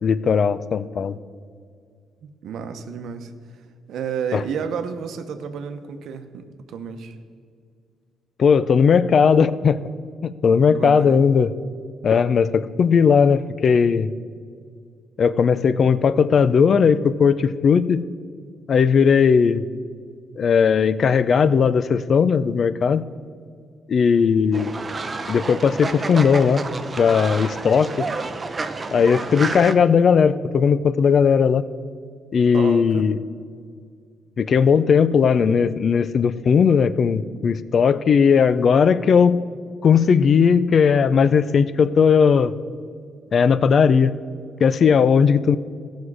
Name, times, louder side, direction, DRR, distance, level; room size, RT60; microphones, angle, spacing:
voice 1, 0.0-1.2 4.3-4.4 8.4-9.8 10.2-11.5 12.0-14.1 15.2-18.0 18.7-19.6 20.4-23.0 23.9-24.7 25.3-26.6 27.0-28.1 28.9-31.6 32.3-33.2 34.4-39.4 39.8-42.5 43.3-44.1 44.6-45.6, left 6 dB, 50° left, 16 dB, 0.4 m, -17 dB
voice 2, 2.2-3.3 3.9-7.1 10.7-11.2 32.5-33.0, right 6 dB, 75° right, 8 dB, 0.8 m, -31 dB
Fowl, 24.5-29.7, right 3 dB, 30° right, 0.6 m, -30 dB
15.5 x 6.3 x 4.8 m, 2.1 s
cardioid pair, 90°, 0 cm